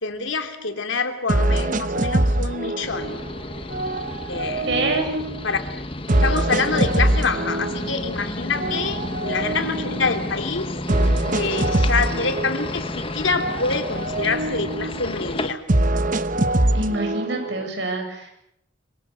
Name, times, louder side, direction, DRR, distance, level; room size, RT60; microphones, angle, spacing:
voice 1, 0.0-3.2 4.3-4.7 5.4-5.6 6.2-10.7 11.3-15.6, left 4 dB, 90° left, 6 dB, 3.0 m, -26 dB
sound 1, 0.6-0.7 1.3-3.3 3.7-5.5 6.1-8.1 8.5-10.3 10.9-13.0 13.3-15.1 15.7-17.7, right 1 dB, 45° right, 1.1 m, -24 dB
sound 2, 2.8-15.5, left 2 dB, 30° left, 1.3 m, -31 dB
voice 2, 4.7-5.1 16.7-18.3, right 2 dB, 65° right, 4 dB, 7.5 m, -25 dB
26.0 x 24.0 x 6.6 m, 0.75 s
head